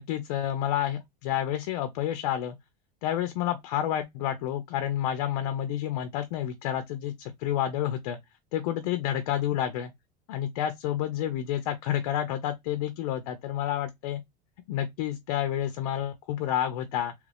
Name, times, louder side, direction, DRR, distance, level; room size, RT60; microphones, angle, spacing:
voice 1, 0.0-2.6 3.0-8.2 8.5-9.9 10.3-14.2 14.7-17.1, left 11 dB, 65° left, 0.7 m, -29 dB
3.1 x 2.5 x 3.4 m
supercardioid pair, 175°, 21 cm